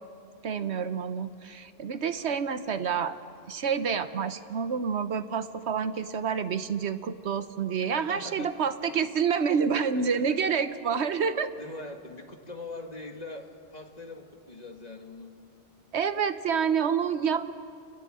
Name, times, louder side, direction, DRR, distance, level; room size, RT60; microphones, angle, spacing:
voice 1, 0.4-3.2 3.5-11.5 15.9-17.5, right 6 dB, 75° right, 11 dB, 1.2 m, -28 dB
voice 2, 7.9-8.6 9.8-10.6 11.6-15.3, left 2 dB, 35° left, 3 dB, 2.0 m, -42 dB
29.5 x 19.5 x 7.7 m, 2.4 s
omnidirectional pair, 1.1 m